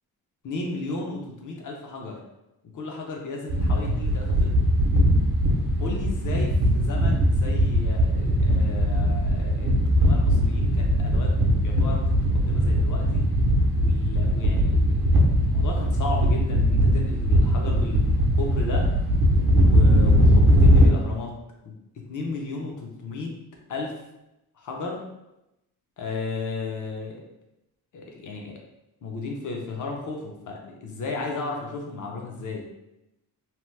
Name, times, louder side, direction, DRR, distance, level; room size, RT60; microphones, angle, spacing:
voice 1, 0.4-2.2 2.7-4.7 5.8-11.3 11.6-12.1 12.3-13.2 13.7-15.1 15.5-18.9 19.5-21.4 21.6-21.7 22.1-23.3 23.7-23.9 24.6-25.1 26.0-27.2 27.9-28.5 29.0-32.6, left 3 dB, 55° left, 0 dB, 0.6 m, -34 dB
sound 1, 3.5-20.9, equal, 70° right, 0.7 m, -20 dB
2.9 x 2.0 x 3.2 m, 0.91 s
wide cardioid pair, 155°, 38 cm